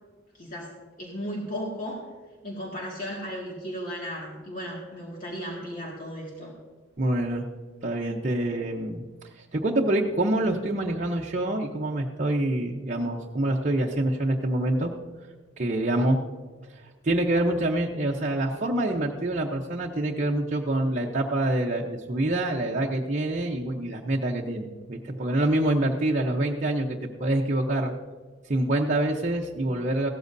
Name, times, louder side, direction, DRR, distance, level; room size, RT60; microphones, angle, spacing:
voice 1, 0.3-0.7 1.0-2.1 2.4-6.5, equal, 45° left, -3 dB, 2.0 m, -35 dB
voice 2, 7.0-7.5 7.8-9.0 9.5-14.9 15.6-16.2 17.0-27.9 28.5-30.1, right 1 dB, 40° right, -2 dB, 0.8 m, -26 dB
16.0 x 13.5 x 2.7 m, 1.3 s
head